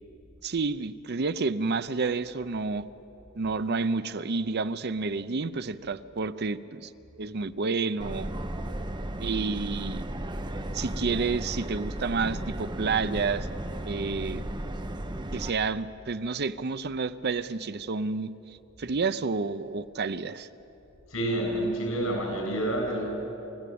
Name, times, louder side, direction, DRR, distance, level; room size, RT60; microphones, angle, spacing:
voice 1, 0.4-2.8 3.3-6.9 7.2-8.3 9.2-10.0 10.7-13.5 13.8-14.4 15.3-20.5, right 4 dB, 50° right, 13 dB, 0.6 m, -30 dB
Subway metro underground, 8.0-15.5, right 1 dB, 20° right, 0.8 m, -34 dB
voice 2, 21.1-23.1, right 1 dB, 90° left, 1 dB, 7.3 m, -28 dB
29.0 x 15.0 x 8.6 m, 3.0 s
head